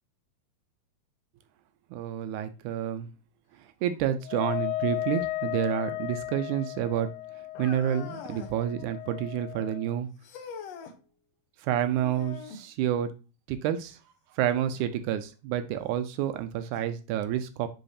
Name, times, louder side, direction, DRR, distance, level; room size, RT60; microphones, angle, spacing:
voice 1, 1.9-3.1 3.5-7.1 7.4-10.1 11.6-13.1 13.5-14.0 14.3-17.7, right 10 dB, 85° right, 1.8 m, -29 dB
Wind instrument woodwind instrument, 4.2-9.9, left 16 dB, 90° left, 2.5 m, -35 dB
sound 1, 7.5-8.6 10.2-11.0 12.0-12.7 14.7-14.8 15.7-15.8 16.8-16.9, left 5 dB, 75° left, 1.5 m, -43 dB
10.0 x 3.9 x 2.7 m
omnidirectional pair, 4.1 m